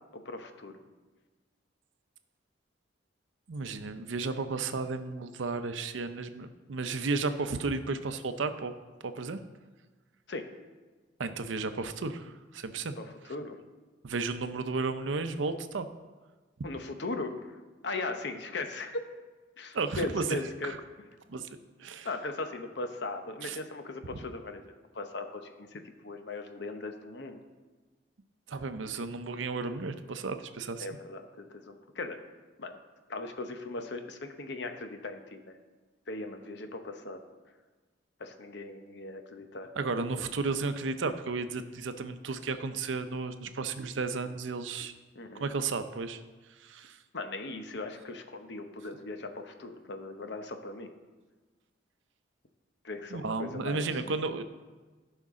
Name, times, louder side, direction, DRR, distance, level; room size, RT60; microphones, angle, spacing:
voice 1, 0.1-0.8 10.3-10.5 13.0-13.6 16.6-17.6 17.8-19.0 19.6-20.7 22.0-24.6 24.9-27.4 30.8-32.2 32.6-32.8 33.1-35.6 36.1-37.2 38.2-39.7 45.1-45.5 47.1-50.9 52.8-53.9, left 2 dB, 65° left, 6 dB, 0.9 m, -38 dB
voice 2, 3.5-8.7 9.0-9.4 11.2-13.0 14.0-15.9 19.7-20.8 21.3-21.5 21.8-22.1 23.4-23.6 28.5-30.9 39.8-44.9 45.4-46.2 46.5-47.0 53.1-54.4, right 4 dB, 80° right, 10 dB, 0.6 m, -33 dB
15.5 x 5.3 x 3.7 m, 1.3 s
head